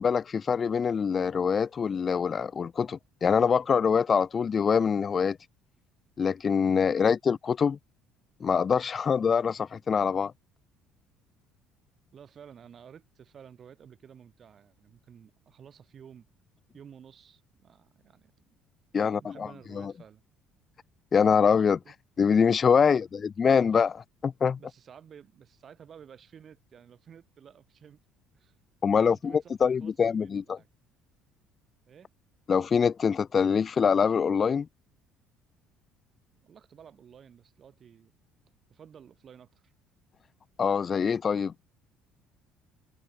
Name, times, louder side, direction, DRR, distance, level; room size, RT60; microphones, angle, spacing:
voice 1, 0.0-5.4 6.2-7.8 8.4-10.3 18.9-19.5 19.8-19.9 21.1-21.8 22.2-23.0 23.4-24.6 28.8-30.6 32.5-34.7 40.6-41.5, left 6 dB, 35° left, 0.3 m, -24 dB
voice 2, 12.1-16.3 16.7-18.6 19.0-20.2 21.8-21.9 22.8-23.1 24.5-28.0 28.3-28.6 28.9-30.7 31.9-32.1 36.3-38.1 38.7-39.7, right 8 dB, 45° right, 6.0 m, -52 dB
hypercardioid pair, 55°, 0 cm